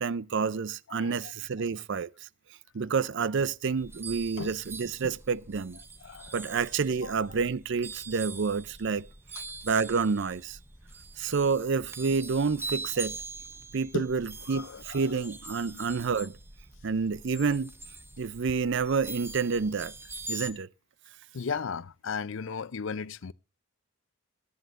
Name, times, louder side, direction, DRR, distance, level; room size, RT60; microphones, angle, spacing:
voice 1, 0.0-2.1 2.7-5.8 6.3-9.1 9.6-10.6 11.2-13.2 13.7-16.3 16.8-17.7 18.2-19.9 20.3-20.7, right 5 dB, 55° right, 0.5 m, -29 dB
voice 2, 0.9-1.3 1.6-1.7 4.4-4.5 5.0-5.1 6.0-6.6 7.0-7.4 13.9-14.1 14.5-15.2 15.7-15.8 21.3-23.3, left 5 dB, 60° left, 0.5 m, -36 dB
sound 1, 3.8-20.5, right 3 dB, 10° right, 0.7 m, -43 dB
21.5 x 9.6 x 2.5 m
head